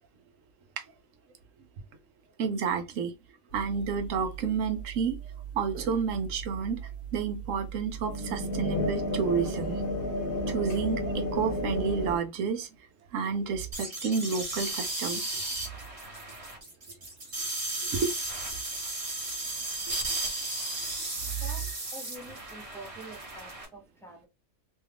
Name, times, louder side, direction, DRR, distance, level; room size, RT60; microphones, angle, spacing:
voice 1, 2.4-3.1 3.5-5.2 5.5-6.8 7.1-9.8 10.5-12.7 13.1-15.5 17.8-18.1 21.3-21.4, right 6 dB, 70° right, 1.0 m, -30 dB
sound 1, 3.5-12.2, equal, 45° left, 1.2 m, -34 dB
sound 2, 13.7-23.6, right 2 dB, 25° right, 1.1 m, -35 dB
voice 2, 21.2-24.3, right 2 dB, 5° left, 0.5 m, -47 dB
3.1 x 2.3 x 3.3 m
omnidirectional pair, 1.5 m